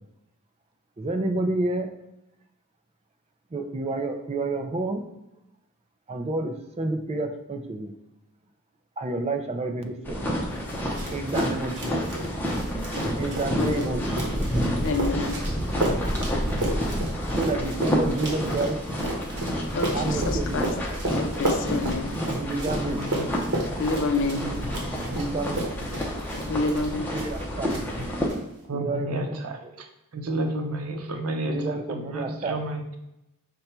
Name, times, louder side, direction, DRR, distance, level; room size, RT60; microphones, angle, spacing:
voice 1, 1.0-1.9 3.5-5.0 6.1-7.9 9.0-10.2 11.1-12.1 13.2-14.4 17.4-18.8 19.9-20.7 22.3-23.0 24.3-24.7 25.0-25.7 26.9-27.7 28.7-29.8 31.4-32.6, right 2 dB, 30° right, 5 dB, 0.4 m, -30 dB
sound 1, 10.1-28.3, equal, 10° left, 0.7 m, -29 dB
sound 2, 10.7-27.4 27.7-28.4, right 1 dB, 50° right, 1.2 m, -33 dB
voice 2, 13.6-13.9 14.8-15.4 19.8-20.7 21.1-22.1 23.8-24.5 26.5-27.2, left 3 dB, 55° left, 6 dB, 0.5 m, -28 dB
voice 3, 23.0-23.3 24.3-25.0 25.8-26.0 28.0-28.1 28.7-29.9 30.1-33.0, right 1 dB, 80° right, 5 dB, 0.7 m, -32 dB
5.2 x 2.3 x 4.3 m, 0.88 s
head